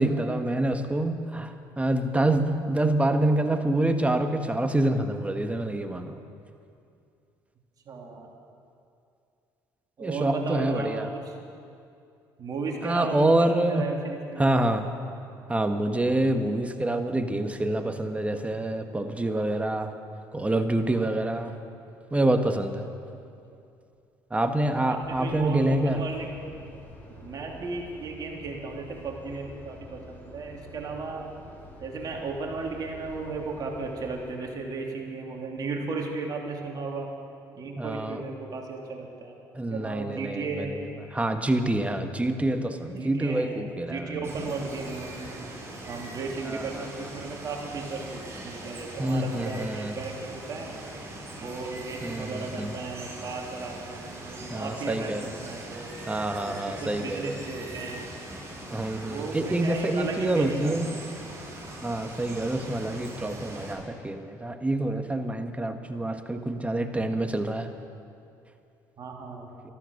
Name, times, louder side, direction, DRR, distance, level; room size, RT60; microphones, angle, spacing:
voice 1, 0.0-6.2 10.0-11.1 12.8-13.9 14.4-14.9 15.5-19.9 20.3-21.5 22.1-22.8 24.3-26.0 37.8-38.2 39.5-40.8 41.1-44.2 46.4-46.8 49.0-50.0 52.0-52.7 54.5-55.4 56.1-57.4 58.7-60.9 61.8-67.7, right 1 dB, 15° right, 7 dB, 1.4 m, -26 dB
voice 2, 7.9-8.3 10.0-11.3 12.4-14.7 23.5-23.6 24.8-26.3 27.2-31.3 31.8-37.1 37.5-39.4 39.7-40.7 42.9-45.5 45.9-50.8 51.3-55.9 56.4-58.1 59.0-61.1 69.0-69.5, right 4 dB, 50° right, 0 dB, 3.0 m, -35 dB
sound 1, 25.0-34.3, left 1 dB, 20° left, 4.0 m, -47 dB
Water, 44.2-63.7, right 1 dB, 30° right, 4.4 m, -41 dB
13.5 x 13.5 x 6.6 m, 2.5 s
supercardioid pair, 75°, 9 cm